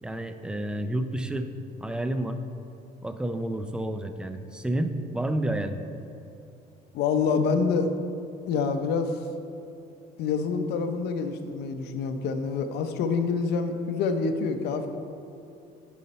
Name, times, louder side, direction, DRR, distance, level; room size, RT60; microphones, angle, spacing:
voice 1, 0.0-1.5 1.8-2.4 3.0-5.8, right 1 dB, 5° right, 8 dB, 0.4 m, -30 dB
voice 2, 6.9-7.9 8.5-9.2 10.2-14.9, left 5 dB, 80° left, 7 dB, 0.7 m, -26 dB
9.3 x 5.5 x 4.2 m, 2.7 s
cardioid pair, 110°, 17 cm